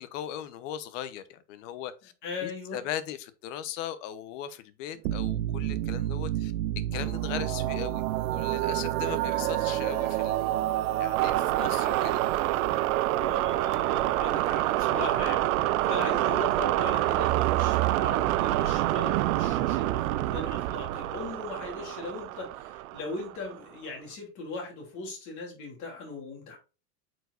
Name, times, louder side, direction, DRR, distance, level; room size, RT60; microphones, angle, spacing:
voice 1, 0.0-2.1 2.4-6.5 6.9-8.0 8.3-10.4 11.0-12.2, left 11 dB, 60° left, 1.0 m, -38 dB
voice 2, 2.2-2.8 12.9-26.6, left 3 dB, 40° left, 3.2 m, -39 dB
sound 1, 5.0-23.5, right 15 dB, 70° right, 0.6 m, -27 dB
8.7 x 4.8 x 2.6 m
supercardioid pair, 155°, 43 cm